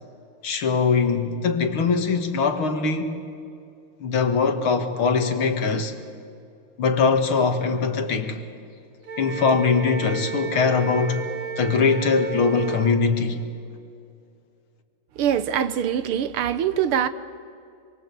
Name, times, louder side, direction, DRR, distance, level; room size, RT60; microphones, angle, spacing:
voice 1, 0.4-3.1 4.0-5.9 6.8-8.4 9.2-11.2 11.6-13.4, left 5 dB, 70° left, 2.6 m, -22 dB
Wind instrument woodwind instrument, 9.0-12.9, right 4 dB, 45° right, 1.6 m, -33 dB
voice 2, 15.2-17.1, right 9 dB, 80° right, 1.9 m, -23 dB
26.0 x 23.5 x 8.3 m
omnidirectional pair, 2.4 m